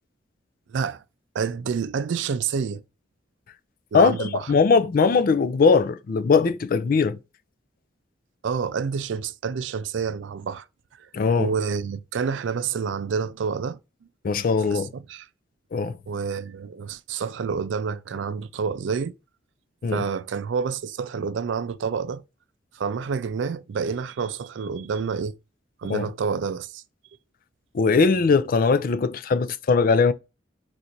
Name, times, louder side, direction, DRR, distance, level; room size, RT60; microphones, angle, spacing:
voice 1, 0.7-1.0 1.3-2.8 3.9-4.5 8.4-10.7 11.0-11.1 11.4-13.8 14.7-15.3 16.1-19.1 19.9-22.2 22.7-25.3 25.8-26.8, right 6 dB, 80° right, 0.4 m, -28 dB
voice 2, 3.9-7.2 11.1-11.5 14.2-14.9 15.7-15.9 19.8-20.0 25.9-26.0 27.7-30.1, left 4 dB, 50° left, 0.4 m, -20 dB
3.9 x 2.5 x 4.3 m
head